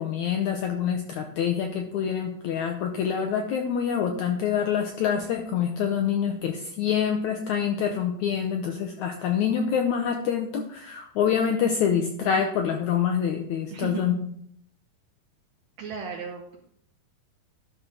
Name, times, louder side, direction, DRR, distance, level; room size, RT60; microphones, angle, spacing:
voice 1, 0.0-14.2, left 8 dB, 80° left, 4 dB, 1.7 m, -26 dB
voice 2, 13.7-14.1 15.8-16.6, right 5 dB, 70° right, 1 dB, 1.7 m, -35 dB
12.0 x 6.0 x 3.8 m, 0.68 s
omnidirectional pair, 4.2 m